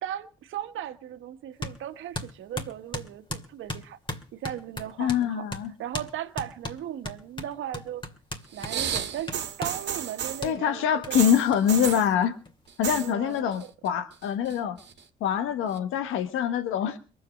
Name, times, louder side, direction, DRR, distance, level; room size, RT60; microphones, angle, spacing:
voice 1, 0.0-4.0 4.3-5.5 5.8-8.0 8.5-11.3 13.0-13.7, right 11 dB, 80° right, 1.3 m, -37 dB
sound 1, 1.6-1.8 2.1-5.2 5.5-5.7 5.9-6.1 6.4-9.8 10.4-10.5 11.0-11.1 11.5-11.6 11.9-12.0 12.2-13.0, left 2 dB, 25° left, 2.4 m, -36 dB
voice 2, 5.0-5.7 10.4-12.3 12.8-14.8 15.2-17.0, left 9 dB, 90° left, 1.2 m, -25 dB
sound 2, 8.5-10.5 11.1-12.1 12.7-13.1 13.4-13.9 14.2-15.0 15.8-15.9, right 8 dB, 60° right, 1.7 m, -32 dB
22.0 x 7.8 x 6.3 m
cardioid pair, 90°, 20 cm